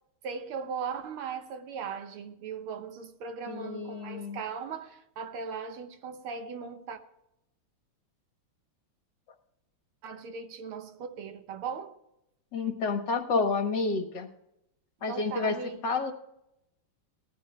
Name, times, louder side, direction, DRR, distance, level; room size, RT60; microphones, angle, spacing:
voice 1, 0.2-7.0 10.0-12.0 15.1-15.9, right 6 dB, 90° right, 2.0 m, -38 dB
voice 2, 3.5-4.4 12.5-14.3 15.0-15.6 15.8-16.1, left 4 dB, 60° left, 1.8 m, -29 dB
19.5 x 14.5 x 2.2 m
omnidirectional pair, 2.3 m